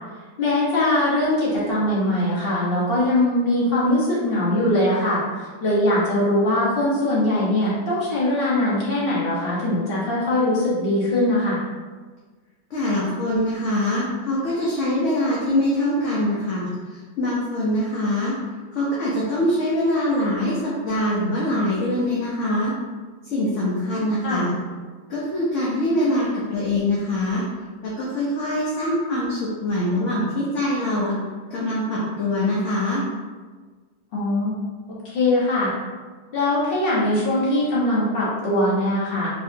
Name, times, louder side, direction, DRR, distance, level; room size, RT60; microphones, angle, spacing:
voice 1, 0.4-11.6 24.2-24.4 34.1-34.5 35.0-35.7 36.3-39.3, left 1 dB, 40° left, -7 dB, 1.2 m, -21 dB
voice 2, 12.7-18.3 18.7-22.7 23.3-24.5 25.1-27.4 27.8-31.2 31.5-33.0, left 1 dB, 60° left, -6 dB, 1.0 m, -23 dB
3.9 x 2.9 x 2.7 m, 1.4 s
omnidirectional pair, 1.5 m